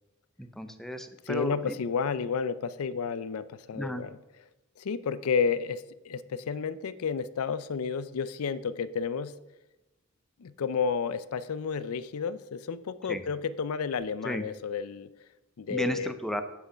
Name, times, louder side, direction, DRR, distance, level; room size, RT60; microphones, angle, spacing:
voice 1, 0.4-1.7 3.7-4.0 13.1-13.2 14.2-14.4 15.7-16.4, equal, ahead, 8 dB, 0.6 m, -34 dB
voice 2, 1.3-4.2 4.8-9.3 10.4-15.1 15.6-16.1, left 6 dB, 85° left, 15 dB, 0.5 m, -31 dB
8.5 x 5.4 x 5.6 m, 0.97 s
head